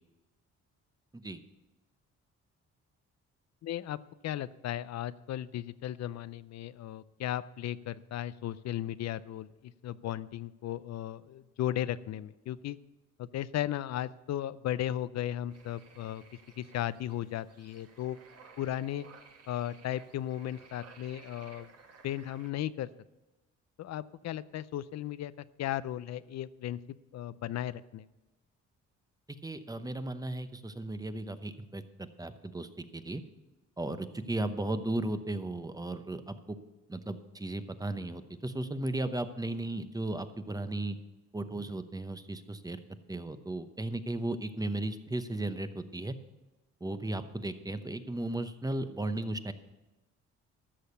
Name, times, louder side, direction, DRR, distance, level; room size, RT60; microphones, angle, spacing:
voice 1, 3.6-4.0 4.2-12.8 13.2-16.2 16.6-18.2 18.6-19.1 19.5-21.7 22.0-22.9 23.8-25.3 25.6-28.1, left 12 dB, 60° left, 17 dB, 0.5 m, -36 dB
sound 1, 15.5-22.5, right 5 dB, 55° right, 1.7 m, -56 dB
voice 2, 29.4-33.2 33.8-36.6 36.9-41.0 41.3-42.8 43.1-46.1 46.8-49.5, right 2 dB, 10° right, 10 dB, 0.8 m, -35 dB
13.5 x 6.5 x 6.9 m, 1.1 s
cardioid pair, 90°, 30 cm